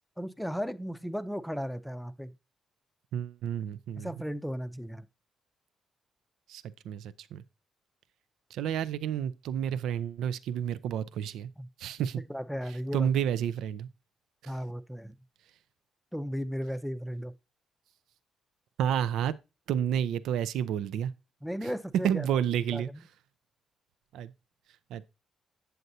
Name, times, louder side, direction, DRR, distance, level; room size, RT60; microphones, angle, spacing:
voice 1, 0.2-2.3 4.0-5.1 11.6-11.7 12.3-13.1 14.5-15.1 16.1-17.3 21.4-22.3 22.7-22.8, equal, ahead, 0.5 m, -35 dB
voice 2, 3.1-4.1 6.5-7.4 8.5-11.5 11.8-12.2 12.7-13.9 14.4-14.5 18.8-19.3 19.7-21.1 21.6-21.7 22.0-22.9 24.1-24.3 24.9-25.1, right 9 dB, 85° right, 0.4 m, -30 dB
7.8 x 7.8 x 2.7 m
cardioid pair, 90°, 0 cm